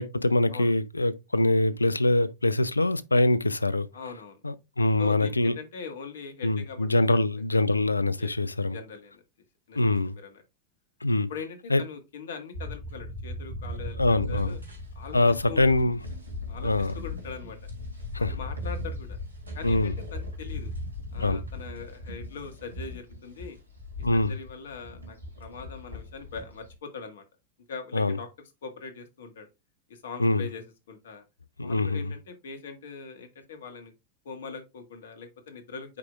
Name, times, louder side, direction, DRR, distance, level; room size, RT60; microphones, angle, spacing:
voice 1, 0.0-3.9 4.4-5.5 6.4-8.8 9.8-10.1 11.0-11.3 11.7-11.8 14.0-14.6 15.1-16.0 16.6-16.9 18.1-18.3 19.6-19.9 21.2-21.4 24.0-24.3 27.9-28.2 30.2-30.4 31.6-32.1, left 2 dB, 80° left, 0.4 m, -24 dB
voice 2, 3.9-4.4 5.0-7.2 7.7-7.8 8.2-8.3 8.7-9.2 9.7-9.8 10.1-10.4 11.3-14.6 14.9-15.2 15.5-15.7 16.5-17.6 18.2-19.2 19.5-20.7 21.1-23.6 24.1-27.2 27.7-28.3 28.6-29.5 29.9-31.2 31.6-33.9 34.2-36.0, left 5 dB, 60° left, 1.6 m, -41 dB
sound 1, 12.5-26.7, left 1 dB, 80° right, 2.4 m, -38 dB
8.4 x 4.8 x 2.4 m
figure-of-eight pair, 90°, 0 cm